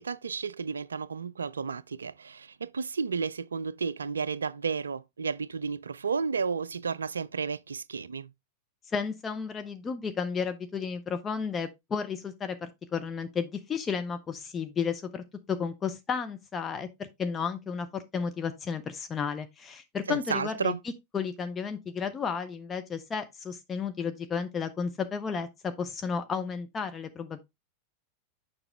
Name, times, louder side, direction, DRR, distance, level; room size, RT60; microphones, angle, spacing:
voice 1, 0.0-8.3 20.1-20.8, right 5 dB, 70° right, 0.3 m, -32 dB
voice 2, 8.9-20.7 21.1-27.4, left 6 dB, 20° left, 0.6 m, -33 dB
6.9 x 5.4 x 3.2 m
figure-of-eight pair, 90°, 0 cm